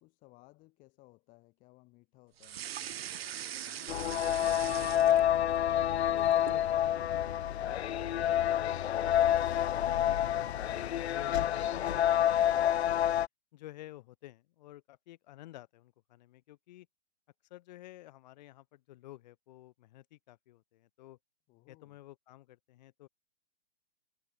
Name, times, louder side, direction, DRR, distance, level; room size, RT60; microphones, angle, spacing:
voice 1, 0.0-4.6 21.5-22.0, left 23 dB, 25° left, 5.5 m, -61 dB
sound 1, 2.4-5.6 6.0-6.7, right 10 dB, 60° right, 1.1 m, -41 dB
sound 2, 3.9-13.3, left 11 dB, 70° left, 0.7 m, -28 dB
voice 2, 5.7-8.4 8.7-9.7 10.2-13.1 13.5-16.9 17.5-21.2 21.7-23.1, left 16 dB, 40° left, 3.9 m, -52 dB
hypercardioid pair, 160°, 34 cm